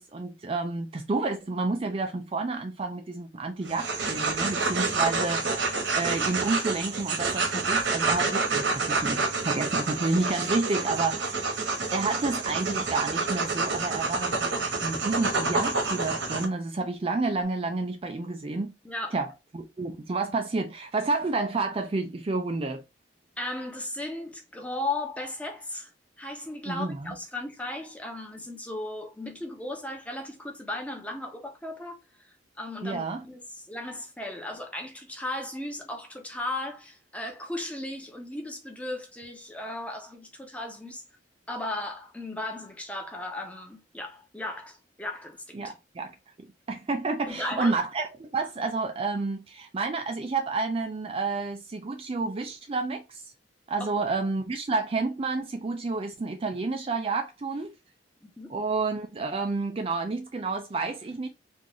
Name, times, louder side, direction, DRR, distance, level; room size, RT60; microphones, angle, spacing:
voice 1, 0.0-11.4 11.9-18.7 19.1-19.3 19.5-22.8 26.7-27.1 32.8-33.2 45.5-46.1 46.7-53.2 53.7-57.7 58.5-61.3, right 3 dB, 30° right, 0.4 m, -30 dB
sound 1, 3.6-16.4, right 4 dB, 80° right, 1.1 m, -28 dB
voice 2, 18.8-19.2 23.4-25.9 26.2-32.0 32.6-33.4 33.7-41.0 41.5-45.6 47.3-47.8 53.8-54.1 58.2-58.5, left 2 dB, 5° left, 0.8 m, -36 dB
3.7 x 2.5 x 3.0 m
head